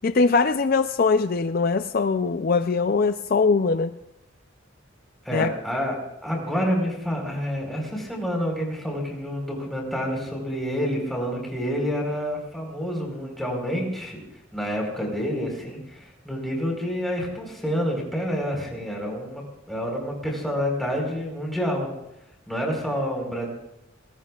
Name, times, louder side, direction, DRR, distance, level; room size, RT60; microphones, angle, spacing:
voice 1, 0.0-3.9 5.3-5.5, left 4 dB, 45° left, 10 dB, 0.4 m, -21 dB
voice 2, 5.2-6.0 6.2-14.2 14.5-21.9 22.5-23.5, equal, ahead, -1 dB, 4.3 m, -28 dB
23.5 x 19.5 x 2.4 m, 0.84 s
head